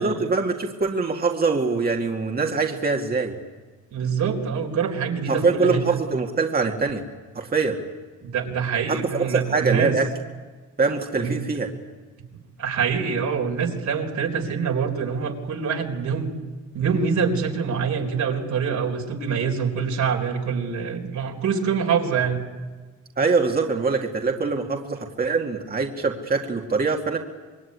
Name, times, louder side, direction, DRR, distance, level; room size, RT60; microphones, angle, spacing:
voice 1, 0.0-3.4 5.3-7.0 7.3-7.8 8.9-10.1 10.8-11.7 23.2-27.2, right 4 dB, 30° right, 2 dB, 2.3 m, -23 dB
voice 2, 3.9-6.0 8.2-10.0 11.1-11.3 12.2-12.3 12.6-16.3 16.7-22.4, right 6 dB, 70° right, 2 dB, 4.3 m, -25 dB
26.0 x 21.5 x 9.8 m, 1.4 s
cardioid pair, 90°, 30 cm